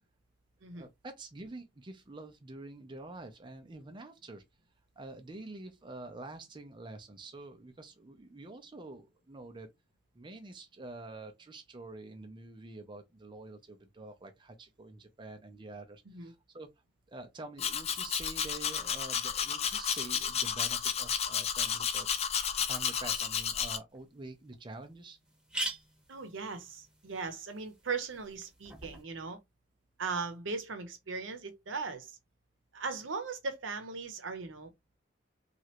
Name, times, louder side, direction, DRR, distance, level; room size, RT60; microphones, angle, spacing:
voice 1, 0.7-4.4 5.0-9.7 10.1-16.7 17.1-22.1 22.6-25.2, right 2 dB, 25° right, 0.5 m, -47 dB
Domestic sounds home sounds, 17.6-23.8, left 8 dB, 35° left, 0.4 m, -32 dB
sound 1, 23.9-24.0 24.5-24.6 24.8-24.9 25.2-29.0, right 1 dB, 5° right, 1.0 m, -43 dB
voice 2, 26.1-29.4 30.0-32.2 32.7-34.7, right 4 dB, 85° right, 0.8 m, -38 dB
3.1 x 2.4 x 2.8 m
head